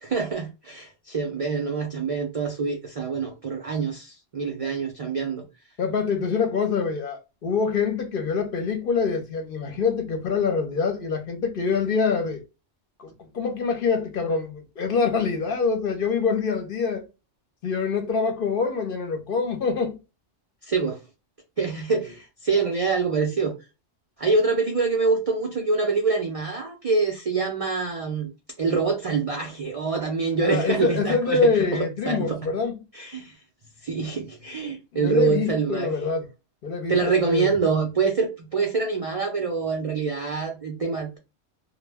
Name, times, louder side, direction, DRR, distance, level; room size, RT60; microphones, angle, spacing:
voice 1, 0.0-5.4 20.7-21.0 21.6-23.5 24.2-28.3 28.6-31.8 32.1-32.4 32.9-33.3 33.8-35.9 36.9-41.2, right 4 dB, 60° right, 0.3 m, -25 dB
voice 2, 5.8-12.4 13.0-17.0 17.6-20.0 30.4-32.7 34.9-36.2 36.6-37.5, left 5 dB, 55° left, 0.7 m, -25 dB
2.1 x 2.0 x 3.3 m
omnidirectional pair, 1.2 m